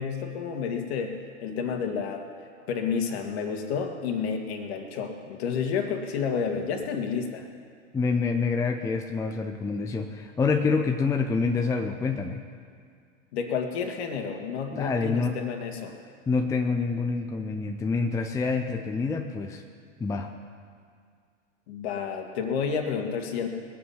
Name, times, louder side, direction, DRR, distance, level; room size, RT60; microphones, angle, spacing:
voice 1, 0.0-2.2 2.7-7.5 13.3-16.0 21.7-23.5, left 6 dB, 55° left, 4 dB, 2.0 m, -30 dB
voice 2, 7.9-12.4 14.7-15.4 16.3-19.6 20.0-20.3, left 4 dB, 10° left, 4 dB, 0.6 m, -27 dB
20.5 x 8.4 x 5.7 m, 2.1 s
figure-of-eight pair, 95°, 39 cm